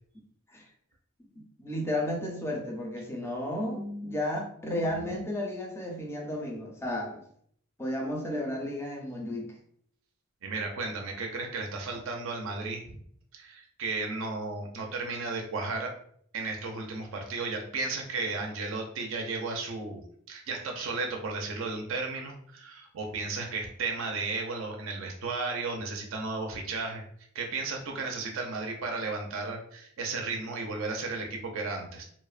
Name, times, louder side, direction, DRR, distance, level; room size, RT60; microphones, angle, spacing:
voice 1, 1.4-7.2 7.8-9.5, left 1 dB, 10° left, 0 dB, 0.4 m, -33 dB
voice 2, 10.4-13.0 13.3-15.9 16.3-27.0 27.3-32.0, right 3 dB, 65° right, 1 dB, 0.4 m, -34 dB
2.9 x 2.0 x 2.4 m, 0.64 s
head